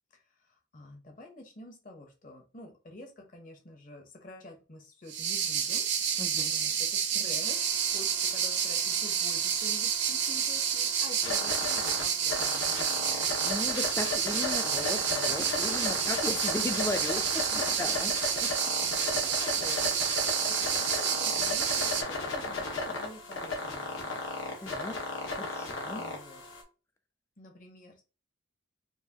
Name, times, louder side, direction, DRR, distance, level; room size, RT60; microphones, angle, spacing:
voice 1, 0.1-6.2 6.5-14.0 14.3-16.1 16.6-16.8 17.5-18.5 18.8-20.0 20.5-24.3 25.9-26.4 27.4-28.0, left 2 dB, 40° left, 2 dB, 0.9 m, -48 dB
sound 1, 5.1-22.0, right 8 dB, 60° right, 0.6 m, -29 dB
voice 2, 6.2-6.5 13.4-17.5 17.8-18.1 18.4-18.5 24.6-25.0 25.4-26.0, left 2 dB, 15° left, 7 dB, 0.3 m, -36 dB
sound 2, 7.4-26.6, left 3 dB, 75° left, 1.1 m, -36 dB
4.7 x 2.5 x 2.8 m, 0.32 s
head